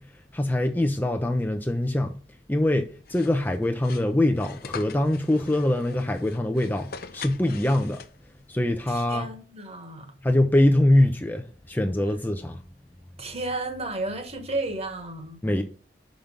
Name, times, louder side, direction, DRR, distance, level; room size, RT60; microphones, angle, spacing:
voice 1, 0.3-2.2 2.5-6.9 7.1-8.0 8.5-9.3 10.2-12.6 15.4-15.6, left 1 dB, 10° left, 0.5 m, -23 dB
sound 1, 3.1-8.4, left 6 dB, 55° left, 0.7 m, -43 dB
voice 2, 8.9-10.1 13.2-15.4, right 2 dB, 35° right, 1.4 m, -32 dB
5.9 x 5.2 x 5.1 m
head